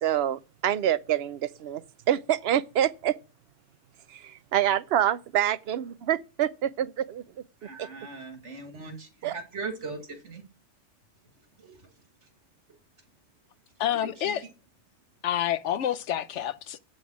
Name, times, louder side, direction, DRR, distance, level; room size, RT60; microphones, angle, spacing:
voice 1, 0.0-3.2 4.1-7.2 7.8-7.9 9.2-9.3, right 11 dB, 65° right, 0.9 m, -26 dB
voice 2, 7.6-10.5 11.6-11.9 12.2-12.3 14.0-14.3, right 4 dB, 85° right, 2.3 m, -39 dB
voice 3, 13.8-14.4 15.2-16.8, left 11 dB, 90° left, 1.0 m, -28 dB
8.1 x 7.4 x 6.1 m
omnidirectional pair, 1.2 m